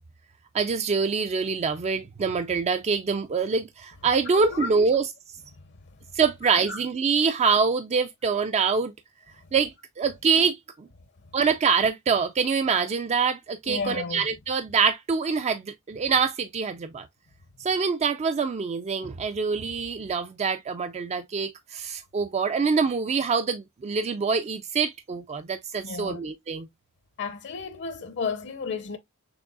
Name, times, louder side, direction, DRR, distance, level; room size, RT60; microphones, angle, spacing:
voice 1, 0.5-5.1 6.1-8.9 9.5-10.9 11.3-17.1 17.6-26.7, right 5 dB, 30° right, 0.3 m, -25 dB
voice 2, 4.4-4.7 5.7-5.9 6.4-6.8 11.3-11.4 13.7-14.2 25.8-26.2 27.2-29.0, left 5 dB, 55° left, 0.6 m, -33 dB
6.2 x 3.2 x 2.3 m
head